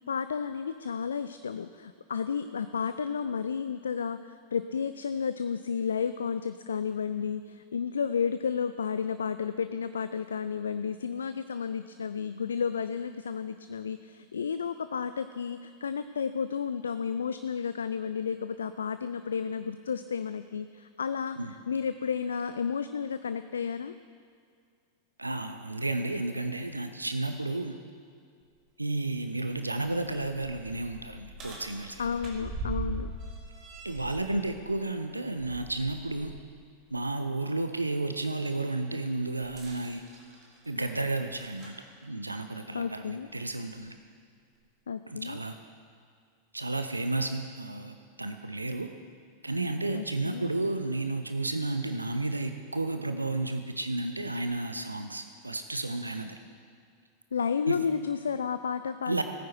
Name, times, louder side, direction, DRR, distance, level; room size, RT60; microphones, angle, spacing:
voice 1, 0.1-4.2 4.5-21.4 21.7-23.9 32.0-33.1 42.7-43.3 44.9-45.4 49.9-50.5 57.3-59.2, left 6 dB, 70° left, 12 dB, 0.3 m, -32 dB
voice 2, 25.2-27.8 28.8-32.3 33.8-36.3 36.9-40.0 40.7-41.7 42.0-43.9 45.1-45.5 46.5-48.9 49.4-56.4 57.7-57.8 59.1-59.2, right 2 dB, 85° right, 8 dB, 0.6 m, -32 dB
sound 1, 28.4-28.5 29.0-29.1 29.7-36.4 36.8-37.0 39.4-41.8 42.8-42.9 43.7-43.8, right 2 dB, 35° right, 2.5 m, -41 dB
16.0 x 9.3 x 4.5 m, 2.2 s
figure-of-eight pair, 90°, 0 cm